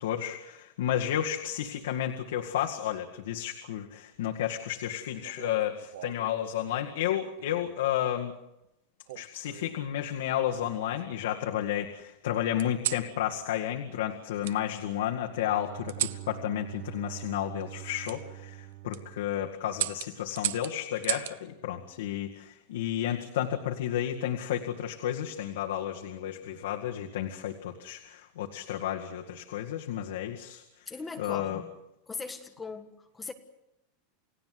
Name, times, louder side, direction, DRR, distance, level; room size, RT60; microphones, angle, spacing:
voice 1, 0.0-8.4 9.2-30.6 31.2-31.6, left 11 dB, 90° left, 2 dB, 2.0 m, -32 dB
sound 1, 5.2-6.3 7.4-7.8 9.1-9.8 10.4-11.3 12.6-13.1 14.4-14.6 15.9-16.2 18.0-18.2 18.7-19.0 19.7-21.4 22.9-23.3, right 13 dB, 65° right, 1.0 m, -36 dB
Bowed string instrument, 15.0-20.0, right 17 dB, 50° right, 2.2 m, -45 dB
voice 2, 30.9-31.8 32.1-33.3, left 4 dB, 10° left, 6 dB, 1.6 m, -40 dB
29.5 x 17.0 x 7.9 m, 0.87 s
supercardioid pair, 180°, 0 cm